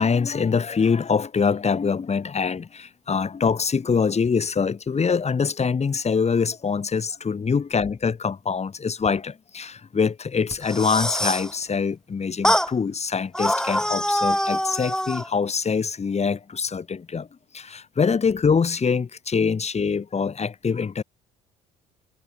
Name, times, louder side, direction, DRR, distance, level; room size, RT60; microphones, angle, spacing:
voice 1, 0.0-17.3 17.5-21.0, left 5 dB, 35° left, 6.1 m, -24 dB
sound 1, 10.5-11.5 12.4-12.7 13.3-15.3, equal, 5° left, 4.0 m, -24 dB
hypercardioid pair, 55°, 20 cm